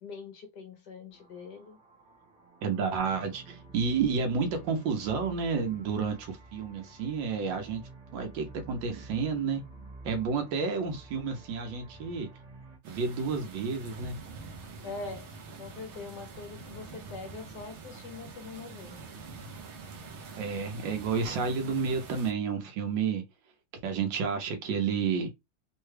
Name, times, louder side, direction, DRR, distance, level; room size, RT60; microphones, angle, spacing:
voice 1, 0.0-1.8 14.8-15.3 15.6-19.0, left 4 dB, 70° left, 1.2 m, -43 dB
sound 1, 1.1-12.8, right 3 dB, 30° right, 1.0 m, -50 dB
voice 2, 2.6-7.8 8.1-9.6 10.0-12.3 12.8-14.2 20.4-23.2 23.8-25.3, right 5 dB, 75° right, 1.5 m, -30 dB
sound 2, 12.8-22.3, right 4 dB, 60° right, 0.7 m, -45 dB
3.6 x 2.2 x 3.2 m
omnidirectional pair, 2.1 m